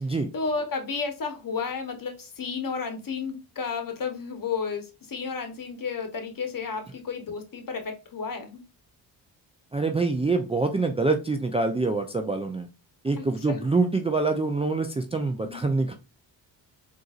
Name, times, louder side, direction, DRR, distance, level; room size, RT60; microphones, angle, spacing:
voice 1, 0.3-8.6 13.2-13.6 15.4-15.6, left 5 dB, 45° left, 6 dB, 1.1 m, -32 dB
voice 2, 9.7-12.7 13.0-15.9, right 3 dB, 15° right, 4 dB, 0.4 m, -25 dB
3.8 x 2.6 x 2.4 m, 0.29 s
cardioid pair, 65°, 46 cm